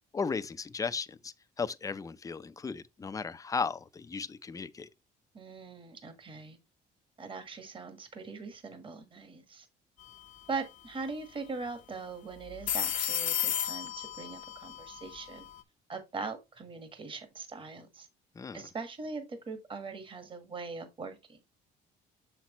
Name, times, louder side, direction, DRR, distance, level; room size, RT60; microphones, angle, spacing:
voice 1, 0.1-4.9 18.3-18.7, left 5 dB, 20° left, 0.6 m, -36 dB
voice 2, 5.3-6.6 7.2-9.7 10.5-15.5 15.9-18.1 18.5-21.4, right 4 dB, 30° right, 1.5 m, -41 dB
sound 1, 10.0-10.3 10.5-10.6 12.4-15.6, left 10 dB, 50° left, 0.8 m, -34 dB
6.9 x 5.9 x 3.0 m
cardioid pair, 110°, 17 cm